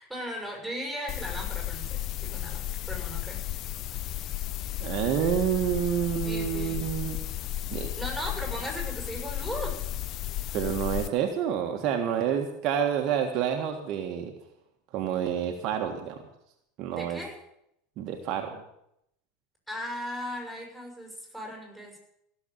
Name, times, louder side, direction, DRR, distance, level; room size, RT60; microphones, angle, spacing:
voice 1, 0.0-3.3 6.2-6.8 8.0-9.7 16.9-17.3 19.7-21.9, equal, ahead, 0 dB, 6.9 m, -37 dB
sound 1, 1.1-11.1, left 13 dB, 45° left, 0.6 m, -34 dB
voice 2, 4.8-7.2 7.7-7.9 10.5-14.3 14.9-16.2 16.8-17.2 18.0-18.6, right 9 dB, 50° right, 3 dB, 1.6 m, -28 dB
16.0 x 7.2 x 9.1 m, 0.78 s
hypercardioid pair, 85°, 0 cm